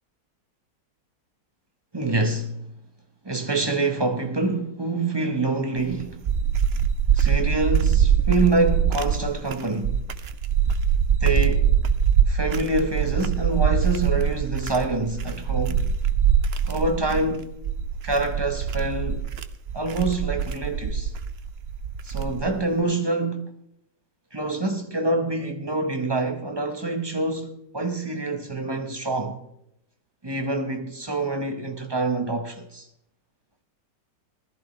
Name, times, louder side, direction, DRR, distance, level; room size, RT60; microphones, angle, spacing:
voice 1, 1.9-2.7 3.2-6.2 7.1-10.0 11.2-11.7 12.3-15.9 16.7-17.5 18.0-19.2 19.7-21.1 22.0-23.5 24.3-29.4 30.2-32.9, right 2 dB, 15° right, 1.1 m, -26 dB
sound 1, 5.8-22.6, right 8 dB, 55° right, 0.7 m, -23 dB
19.5 x 14.5 x 3.3 m
omnidirectional pair, 1.9 m